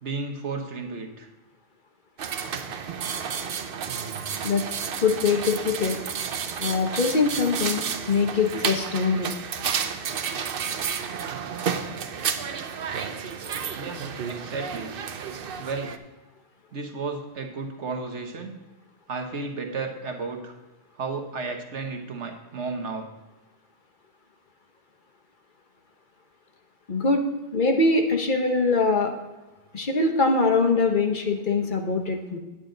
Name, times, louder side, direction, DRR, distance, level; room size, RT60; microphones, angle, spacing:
voice 1, 0.0-1.3 13.7-14.9 15.6-15.9 16.7-18.5 19.1-20.5 21.0-23.1, right 4 dB, 80° right, 4 dB, 1.5 m, -33 dB
sound 1, 2.2-16.0, right 7 dB, 60° right, 0.8 m, -31 dB
voice 2, 5.0-6.0 6.6-7.8 8.1-9.3 26.9-27.2 27.5-29.1 29.7-32.4, left 4 dB, 45° left, 4 dB, 1.1 m, -23 dB
9.7 x 8.7 x 3.9 m, 1.1 s
omnidirectional pair, 1.2 m